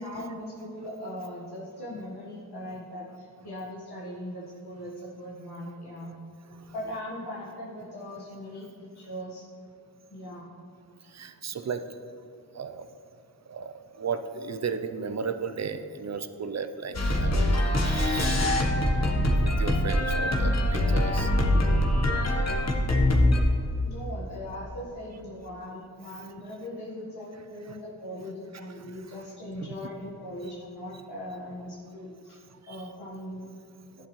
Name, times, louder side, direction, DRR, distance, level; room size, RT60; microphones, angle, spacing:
voice 1, 0.0-6.1 6.7-9.5 10.1-10.5 23.8-32.4 32.7-33.5, left 1 dB, 75° left, -6 dB, 1.6 m, -39 dB
voice 2, 11.1-11.9 12.5-12.9 13.5-18.6 19.4-21.3 26.1-26.3 27.7-27.8 28.5-28.7 29.6-29.7 32.7-32.9, right 5 dB, 40° right, 10 dB, 0.6 m, -35 dB
sound 1, 16.9-23.4, left 1 dB, 40° left, 1.3 m, -23 dB
11.5 x 7.7 x 3.2 m, 2.4 s
cardioid pair, 40°, 39 cm